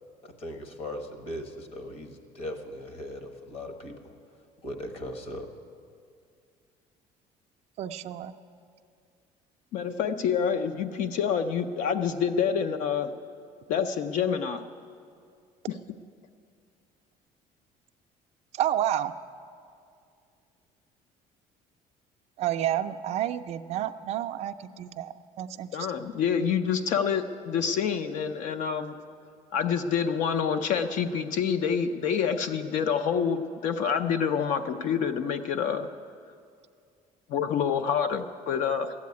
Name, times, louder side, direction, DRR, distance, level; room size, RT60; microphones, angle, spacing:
voice 1, 0.2-4.0 4.6-5.5, left 1 dB, 45° left, 7 dB, 1.2 m, -38 dB
voice 2, 7.8-8.3 18.5-19.1 22.4-25.7, right 11 dB, 50° right, 9 dB, 0.4 m, -30 dB
voice 3, 9.7-13.1 13.7-14.6 15.7-15.8 25.7-28.9 29.5-35.9 37.3-38.9, left 7 dB, 60° left, 9 dB, 0.6 m, -27 dB
13.0 x 8.4 x 9.5 m, 2.3 s
cardioid pair, 175°, 14 cm